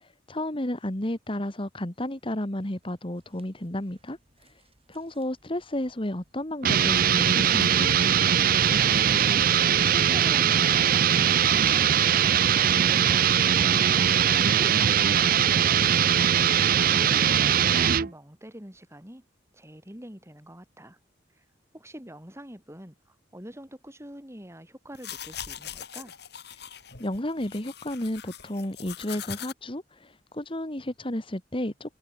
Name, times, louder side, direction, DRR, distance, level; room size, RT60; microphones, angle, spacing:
voice 1, 0.3-4.2 4.9-7.9 27.0-32.0, left 1 dB, 30° left, 1.9 m, -32 dB
sound 1, 2.6-15.0, right 1 dB, 30° right, 6.4 m, -56 dB
sound 2, 6.6-18.1, right 9 dB, 50° right, 0.5 m, -21 dB
voice 2, 12.6-14.0 16.8-19.3 19.5-21.0 21.4-21.5 21.7-26.1, equal, 15° right, 7.2 m, -45 dB
sound 3, 24.9-29.5, left 10 dB, 60° left, 4.3 m, -41 dB
head